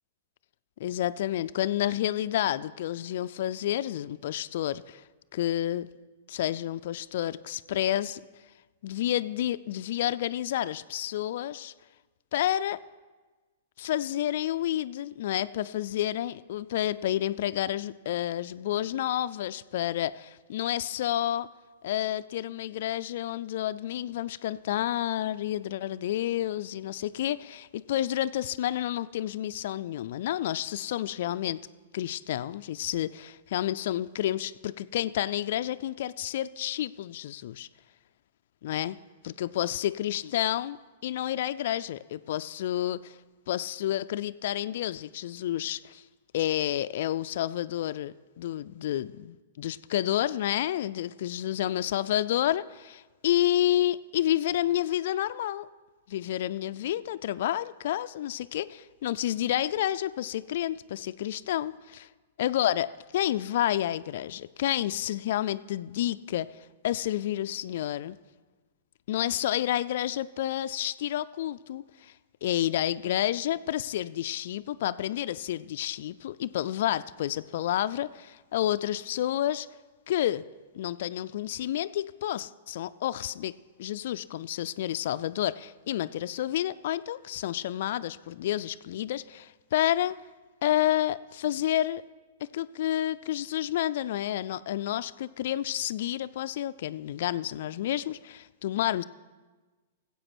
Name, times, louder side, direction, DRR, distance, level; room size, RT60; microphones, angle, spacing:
voice 1, 0.8-5.0 5.3-5.9 6.3-8.2 8.8-11.7 12.3-12.8 13.8-21.5 21.8-31.6 31.9-37.7 38.6-39.0 39.2-40.8 41.0-43.2 43.5-46.0 46.3-55.7 56.1-62.1 62.4-66.5 66.8-68.2 69.1-72.1 72.4-79.7 80.1-80.4 80.7-83.5 83.8-90.2 90.6-92.0 92.4-99.0, left 12 dB, 60° left, 13 dB, 0.3 m, -30 dB
13.5 x 8.1 x 6.0 m, 1.3 s
hypercardioid pair, 120°, 0 cm